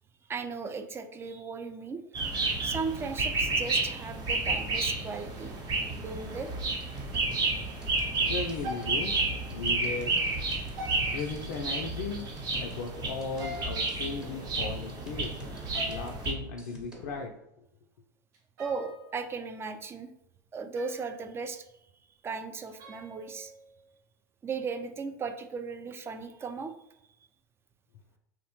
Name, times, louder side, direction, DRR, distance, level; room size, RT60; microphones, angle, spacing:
voice 1, 0.3-2.1 2.6-5.5 6.0-6.5 8.0-8.1 18.6-20.1 20.5-21.6 22.2-23.5 24.4-26.7, right 5 dB, 25° right, 7 dB, 0.3 m, -36 dB
sound 1, 2.1-16.3, right 3 dB, 45° right, 0.8 m, -31 dB
sound 2, 6.5-17.2, equal, 10° right, 0.8 m, -45 dB
sound 3, 6.8-7.3 7.5-7.7 8.6-9.7 10.8-11.6 13.2-14.6 15.7-16.3 18.3-19.5 20.7-21.4 22.7-23.9, left 1 dB, 75° right, 0.7 m, -45 dB
voice 2, 8.3-9.1 9.5-10.2 11.1-12.3 12.6-15.4 15.9-17.3, left 4 dB, 75° left, 1 dB, 0.3 m, -36 dB
2.9 x 2.0 x 2.9 m, 0.83 s
hypercardioid pair, 90°, 10 cm